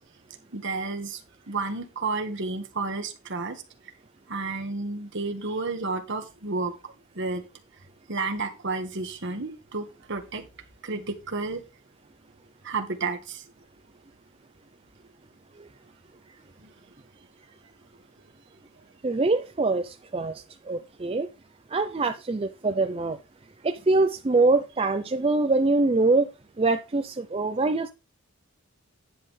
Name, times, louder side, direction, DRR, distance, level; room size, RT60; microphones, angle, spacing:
voice 1, 0.5-1.2 1.5-3.6 4.3-6.7 7.1-7.4 8.1-10.4 10.8-11.6 12.6-13.4 16.6-16.7, right 3 dB, 55° right, 5 dB, 1.6 m, -31 dB
voice 2, 19.0-21.3 21.7-23.2 23.6-26.3 26.6-27.9, right 3 dB, 25° right, 7 dB, 0.5 m, -24 dB
10.0 x 7.5 x 3.3 m, 0.27 s
head